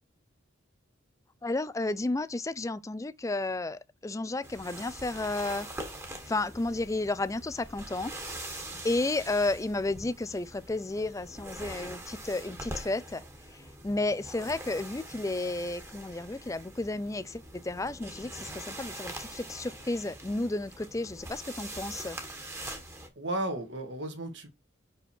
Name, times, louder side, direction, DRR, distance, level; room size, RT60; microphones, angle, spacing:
voice 1, 1.4-5.7 6.3-8.1 8.8-13.2 13.8-22.2, left 2 dB, 15° left, 0.4 m, -32 dB
sound 1, 4.4-23.1, right 1 dB, 15° right, 1.5 m, -43 dB
voice 2, 23.2-24.5, right 1 dB, 60° right, 1.8 m, -34 dB
6.1 x 5.3 x 4.4 m
head